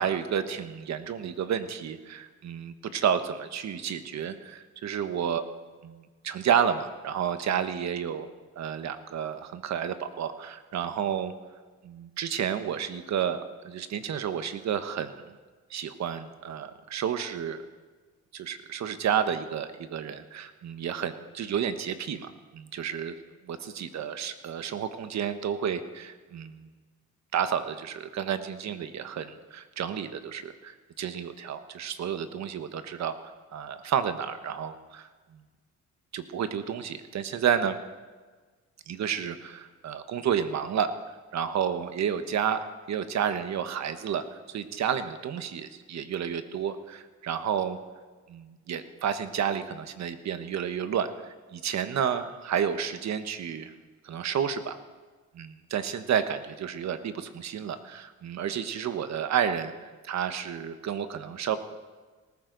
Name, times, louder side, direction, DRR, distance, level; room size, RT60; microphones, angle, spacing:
voice 1, 0.0-5.4 5.8-8.3 8.6-11.3 11.8-15.2 15.7-17.6 18.3-23.2 23.4-26.7 27.3-35.4 36.1-37.8 38.9-40.9 41.3-47.8 48.3-53.7 54.0-54.8 55.3-61.6, right 8 dB, 65° right, 10 dB, 1.2 m, -31 dB
19.0 x 14.5 x 4.0 m, 1.4 s
cardioid pair, 90°, 30 cm